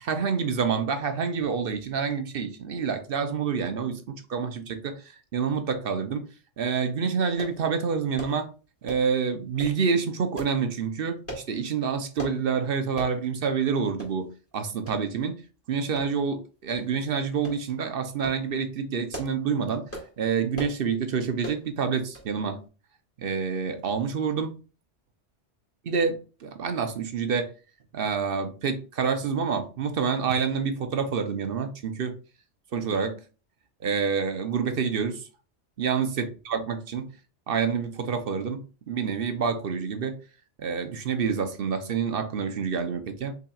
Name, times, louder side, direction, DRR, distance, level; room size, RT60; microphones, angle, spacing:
voice 1, 0.0-6.3 6.6-8.5 8.8-15.4 15.7-19.9 20.2-22.6 23.2-24.6 25.9-27.5 27.9-32.2 32.7-33.2 33.8-35.3 35.8-37.1 37.5-40.2 40.6-43.4, right 6 dB, 60° right, 0.8 m, -28 dB
sound 1, 7.4-7.6 8.2-8.4 8.9-9.1 9.6-9.8 10.4-10.6 11.3-11.5 12.2-12.4 13.0-13.2 13.5-13.6 14.0-14.1 14.9-15.0 16.0-16.3 16.7-16.8 17.4-17.6 18.1-18.4 18.9-19.4 19.9-20.1 20.5-20.8 21.4-21.6 22.1-22.3 22.6-22.7, right 1 dB, 10° left, 1.9 m, -39 dB
5.8 x 3.9 x 2.3 m
omnidirectional pair, 1.2 m